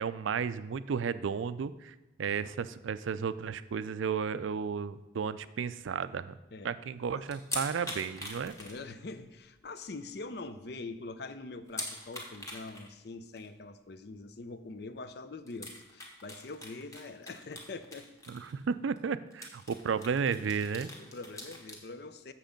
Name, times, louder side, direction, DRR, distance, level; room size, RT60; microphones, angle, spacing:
voice 1, 0.0-6.3 6.6-8.5 18.3-20.9, right 6 dB, 85° right, 14 dB, 0.4 m, -33 dB
sound 1, 7.3-9.3 9.6-9.7 10.1-10.2 10.5-10.6 11.7-12.9 13.4-13.5 14.8-14.9 15.5-18.7 19.0-19.1 19.3-21.8, left 1 dB, 15° left, 1.2 m, -43 dB
voice 2, 8.4-18.2 21.0-22.3, left 3 dB, 55° left, 11 dB, 0.5 m, -44 dB
7.5 x 6.9 x 5.2 m, 0.95 s
head